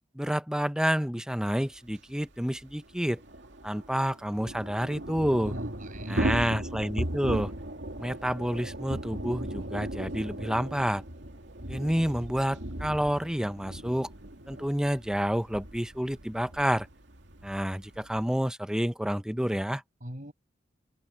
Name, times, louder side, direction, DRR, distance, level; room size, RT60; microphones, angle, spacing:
voice 1, 0.1-3.2 3.6-5.5 6.1-7.5 8.0-11.0 11.7-14.1 14.5-16.9 17.4-19.8, equal, 5° right, 0.7 m, -29 dB
Thunder / Rain, 1.9-2.0 2.2-2.3 2.6-18.5, right 1 dB, 70° right, 2.5 m, -37 dB
voice 2, 5.3-6.5 20.0-20.3, equal, 45° right, 7.5 m, -40 dB
head